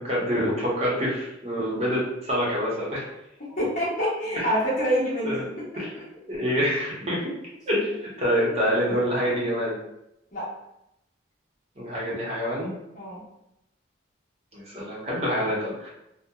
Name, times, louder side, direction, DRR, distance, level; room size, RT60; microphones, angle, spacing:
voice 1, 0.0-3.0 4.3-4.5 5.0-5.5 5.8-5.9 6.3-7.3 7.7-9.8 11.8-12.7 14.5-15.9, equal, 35° right, -5 dB, 0.8 m, -26 dB
voice 2, 3.5-5.4 5.7-6.0 8.4-8.5 10.3-10.4 12.9-13.2, equal, 45° left, -8 dB, 1.1 m, -27 dB
2.8 x 2.1 x 2.2 m, 0.85 s
head